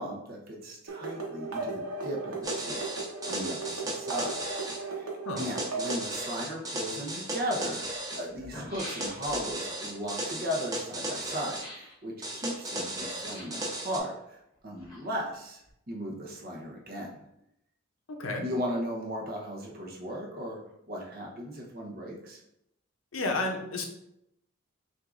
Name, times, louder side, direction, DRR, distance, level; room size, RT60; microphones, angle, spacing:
voice 1, 0.0-2.8 3.2-4.4 4.7-5.1 5.4-15.6 15.9-17.1 18.4-20.6 20.9-22.4, equal, 45° right, -1 dB, 0.8 m, -36 dB
sound 1, 0.9-6.0, right 3 dB, 80° right, 0.9 m, -36 dB
sound 2, 2.4-4.8 5.4-8.2 8.8-11.7 12.2-14.0, right 1 dB, 15° right, 0.6 m, -35 dB
sound 3, 8.3-9.5 11.5-12.0 13.1-13.7 14.5-15.3 15.6-15.7, equal, 20° left, 1.2 m, -45 dB
voice 2, 18.2-18.5 23.1-23.9, left 2 dB, 70° left, 3 dB, 0.7 m, -31 dB
6.1 x 2.5 x 2.5 m, 0.81 s
head